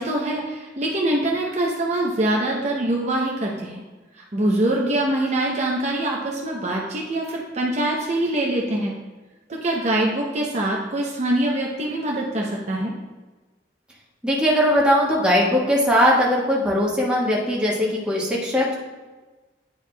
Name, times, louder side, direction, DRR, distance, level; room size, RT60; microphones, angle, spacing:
voice 1, 0.0-3.8 4.3-8.9 9.5-12.9, right 1 dB, 40° right, -2 dB, 0.7 m, -24 dB
voice 2, 14.2-18.8, equal, 5° right, -5 dB, 1.3 m, -20 dB
9.8 x 4.6 x 2.3 m, 1.2 s
head